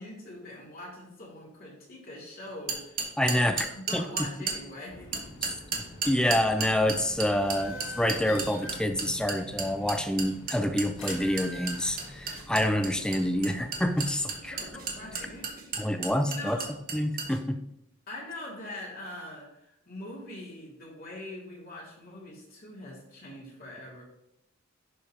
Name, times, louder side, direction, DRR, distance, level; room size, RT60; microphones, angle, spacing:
voice 1, 0.0-5.1 5.7-6.0 14.3-15.6 15.9-16.7 18.1-24.0, left 1 dB, 45° left, -4 dB, 2.7 m, -43 dB
sound 1, 2.7-4.6 5.1-17.4, right 5 dB, 45° right, 1.2 m, -33 dB
voice 2, 3.2-3.7 3.9-4.1 5.4-5.5 6.0-14.6 15.8-16.6 16.9-17.6, left 1 dB, 5° left, 7 dB, 0.5 m, -27 dB
sound 2, 4.9-15.5, left 1 dB, 80° left, 1.8 m, -45 dB
11.0 x 5.3 x 2.8 m, 0.82 s
head